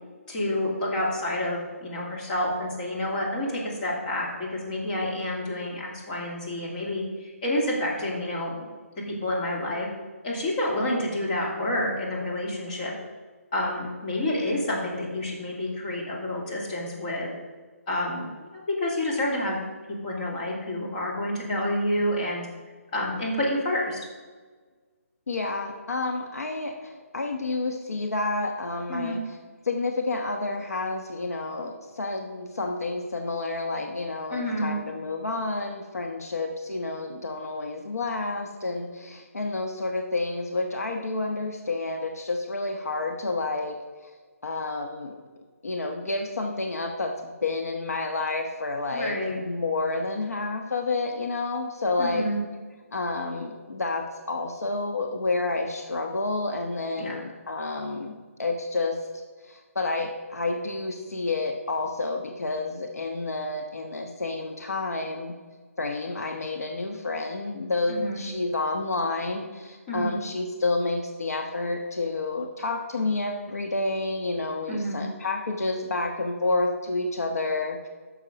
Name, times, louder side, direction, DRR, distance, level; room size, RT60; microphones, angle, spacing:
voice 1, 0.3-8.5 9.0-9.9 10.2-12.9 13.5-17.3 17.9-19.6 20.0-22.5 22.9-24.0 28.9-29.2 34.3-34.8 48.9-49.4 52.0-52.4 57.0-57.2 67.9-68.2 69.9-70.1 74.7-75.0, left 1 dB, 35° left, -3 dB, 2.7 m, -29 dB
voice 2, 25.3-29.4 29.6-43.8 44.0-44.1 44.4-45.2 45.6-52.3 52.9-59.0 59.4-65.3 65.8-77.9, left 3 dB, 80° left, 3 dB, 1.2 m, -29 dB
10.0 x 6.7 x 5.2 m, 1.4 s
hypercardioid pair, 155°, 8 cm